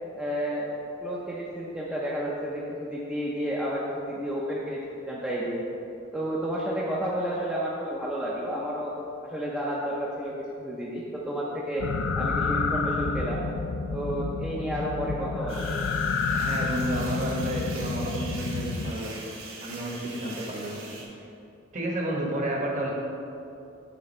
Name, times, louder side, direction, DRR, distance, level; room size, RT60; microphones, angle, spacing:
voice 1, 0.1-5.6 6.1-8.9 9.2-11.9 12.2-13.4 13.9-15.8, equal, 5° right, -6 dB, 0.5 m, -31 dB
sound 1, 11.8-18.9, left 4 dB, 70° left, 0.3 m, -29 dB
sound 2, 15.5-21.0, right 3 dB, 75° right, 1.2 m, -42 dB
voice 2, 16.3-19.3 19.6-20.8 21.7-22.9, right 1 dB, 35° right, -2 dB, 1.0 m, -31 dB
7.4 x 3.4 x 5.3 m, 2.7 s
head